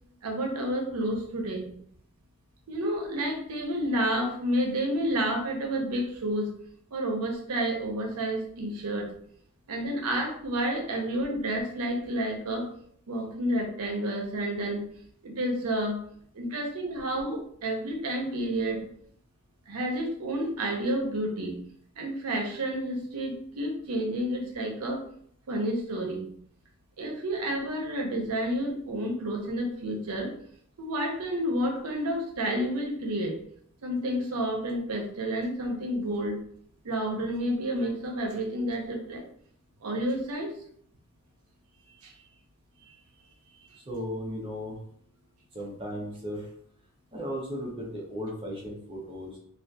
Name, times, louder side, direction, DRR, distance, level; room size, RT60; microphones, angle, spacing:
voice 1, 0.2-1.7 2.7-6.5 6.9-9.1 9.7-12.6 13.1-14.9 15.2-16.0 16.4-18.8 19.7-21.6 22.0-25.0 25.5-26.3 27.0-30.3 30.8-33.4 33.8-36.4 36.8-39.2 39.8-40.5 42.0-42.1, right 1 dB, 85° right, 2 dB, 0.6 m, -30 dB
voice 2, 43.9-44.8 45.5-46.4 47.1-49.4, equal, 25° right, -2 dB, 0.5 m, -36 dB
2.7 x 2.4 x 2.2 m, 0.64 s
head